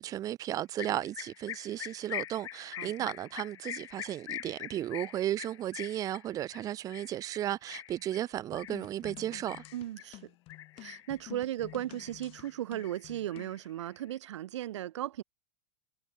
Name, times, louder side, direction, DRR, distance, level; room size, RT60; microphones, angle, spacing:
voice 1, 0.0-9.6, right 12 dB, 25° right, 0.4 m, -34 dB
sound 1, 0.8-10.1 10.5-11.2 11.6-12.5 12.8-14.1, left 13 dB, 75° left, 5.8 m, -44 dB
voice 2, 2.8-3.1 9.7-10.3 10.8-15.2, right 13 dB, 85° right, 0.9 m, -36 dB
sound 2, 8.5-13.6, left 19 dB, 40° left, 2.4 m, -50 dB
supercardioid pair, 135°, 15 cm